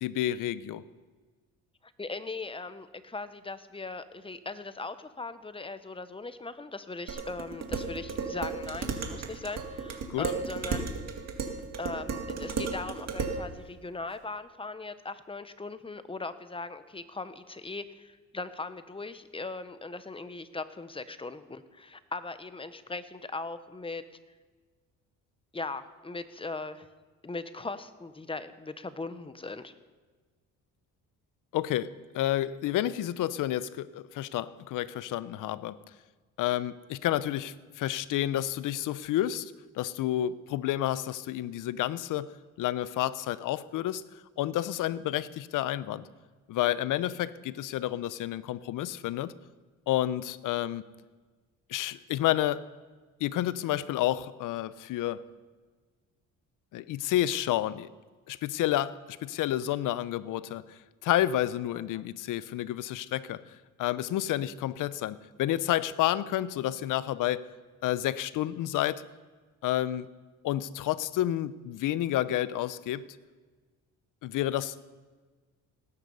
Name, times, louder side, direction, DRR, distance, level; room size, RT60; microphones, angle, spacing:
voice 1, 0.0-0.8 10.1-10.3 31.5-35.8 36.4-42.3 42.6-44.0 44.4-46.1 46.5-49.3 49.9-50.8 51.7-52.7 53.2-55.2 56.7-57.9 58.3-63.4 63.8-67.5 67.8-69.0 69.6-70.1 70.4-73.0 74.2-74.8, left 13 dB, 70° left, 17 dB, 0.7 m, -30 dB
voice 2, 2.0-10.9 11.8-24.0 25.5-26.9 27.2-29.7 61.7-62.0, left 3 dB, 15° left, 12 dB, 0.9 m, -39 dB
Dishes pots and pans, 7.1-13.4, right 5 dB, 50° right, 2.1 m, -34 dB
18.0 x 9.6 x 5.5 m, 1.4 s
cardioid pair, 85°, 33 cm